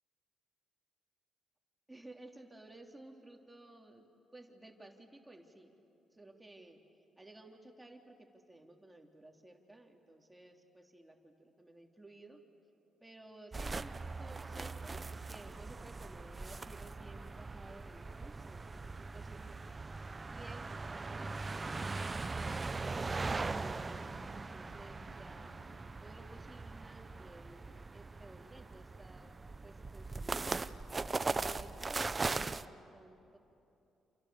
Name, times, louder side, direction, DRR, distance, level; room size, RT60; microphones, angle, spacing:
voice 1, 1.9-4.0 4.3-5.8 6.1-6.8 7.2-12.4 13.0-19.6 20.1-21.4 21.8-25.6 26.0-29.3 29.6-30.9 31.2-33.4, right 2 dB, 15° right, 2 dB, 3.3 m, -55 dB
sound 1, 13.5-32.6, right 3 dB, 30° right, 0.8 m, -40 dB
sound 2, 21.1-26.4, left 6 dB, 75° left, 1.6 m, -63 dB
28.5 x 28.5 x 7.1 m, 2.8 s
supercardioid pair, 55°, 0 cm